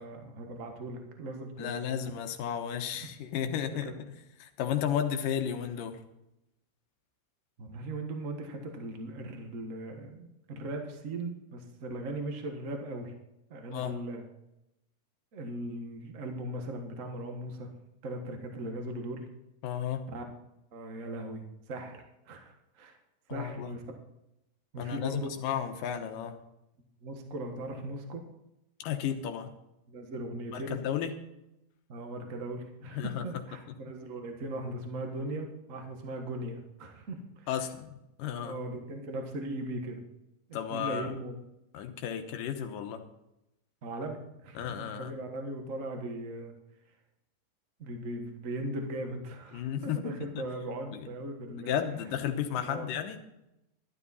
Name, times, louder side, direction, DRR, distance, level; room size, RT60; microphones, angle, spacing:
voice 1, 0.0-2.0 3.0-3.1 7.6-13.1 13.5-14.2 15.3-17.7 18.0-19.3 20.1-20.2 20.7-23.0 23.3-23.8 24.7-25.3 27.0-28.2 29.9-30.8 31.9-37.5 38.4-40.0 40.7-41.3 43.8-46.5 47.8-51.8 52.6-52.9, right 1 dB, 65° right, 4 dB, 0.7 m, -39 dB
voice 2, 1.6-4.1 4.4-6.0 13.7-14.0 19.6-20.1 23.3-23.8 24.8-26.4 28.8-29.5 30.5-31.1 32.9-33.2 37.5-38.6 40.5-41.1 41.7-43.0 44.6-45.1 49.5-50.4 50.9-51.0 51.5-53.2, left 9 dB, 80° left, 6 dB, 2.7 m, -33 dB
12.0 x 12.0 x 4.1 m, 0.88 s
omnidirectional pair, 3.9 m